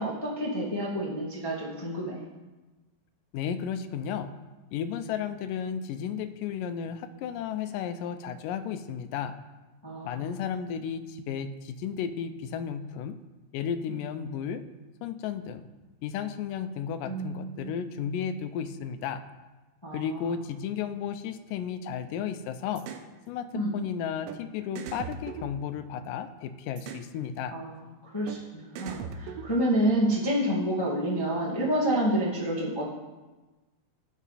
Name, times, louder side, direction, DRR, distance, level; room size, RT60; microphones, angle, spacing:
voice 1, 0.0-2.2 9.8-10.4 13.9-14.0 17.0-17.7 19.8-20.4 23.5-23.7 27.5-32.8, right 1 dB, 35° left, -5 dB, 0.3 m, -29 dB
voice 2, 3.3-4.3 4.7-9.4 10.0-13.2 13.5-14.7 15.0-15.6 16.0-19.2 19.9-22.9 23.3-23.5 23.7-27.6, left 8 dB, 80° left, 9 dB, 2.1 m, -33 dB
sound 1, 22.8-23.1 24.3-24.4 24.8-26.2 26.8-27.1 28.3-28.4 28.8-29.9, right 7 dB, 80° right, 2.2 m, -39 dB
17.5 x 6.1 x 4.2 m, 1.2 s
omnidirectional pair, 4.3 m